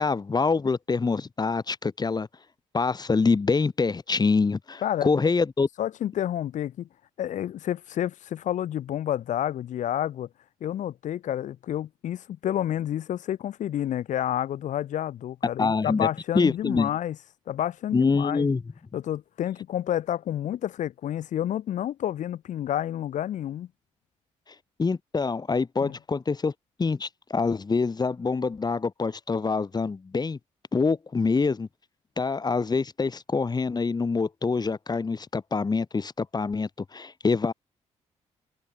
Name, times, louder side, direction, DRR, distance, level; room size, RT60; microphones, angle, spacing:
voice 1, 0.0-2.3 2.7-5.7 15.6-16.1 16.3-16.9 17.9-18.6 24.8-26.5 26.8-30.4 30.7-31.7 32.2-37.5, left 4 dB, 35° left, 6.4 m, -25 dB
voice 2, 5.8-6.9 7.2-10.3 10.6-17.2 17.5-18.5 18.9-23.7 25.8-25.9, left 11 dB, 75° left, 5.8 m, -29 dB
cardioid pair, 85°, 13 cm